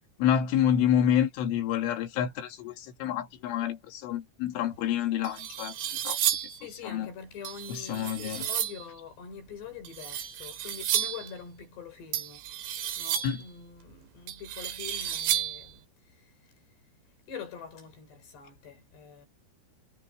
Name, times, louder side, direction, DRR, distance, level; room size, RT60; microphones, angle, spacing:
voice 1, 0.2-6.2 6.8-7.1 7.7-8.5 13.2-13.4, left 9 dB, 90° left, 4.5 m, -28 dB
sound 1, 4.7-4.8 5.2-6.6 7.5-8.9 9.9-11.3 12.1-13.5 14.3-15.7, right 10 dB, 80° right, 4.8 m, -32 dB
voice 2, 6.5-12.4 13.0-16.5 17.3-19.3, left 6 dB, 65° left, 7.2 m, -44 dB
omnidirectional pair, 5.4 m